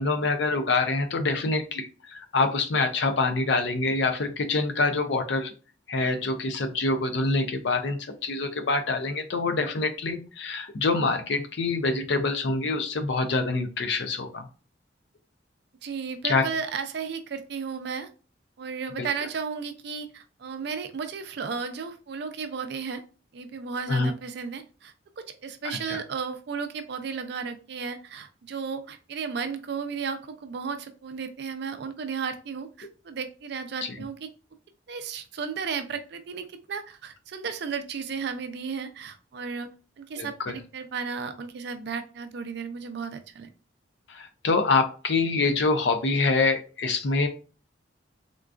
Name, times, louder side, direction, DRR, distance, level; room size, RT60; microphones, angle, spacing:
voice 1, 0.0-5.5 5.9-14.5 16.2-16.4 19.0-19.1 23.9-24.1 25.9-26.0 33.8-33.9 40.2-40.6 44.1-47.3, left 3 dB, 65° left, 7 dB, 0.5 m, -25 dB
voice 2, 15.8-18.1 18.6-23.0 23.3-34.3 34.9-39.7 40.0-43.5, right 5 dB, 60° right, 9 dB, 0.4 m, -34 dB
3.7 x 2.3 x 2.4 m, 0.36 s
head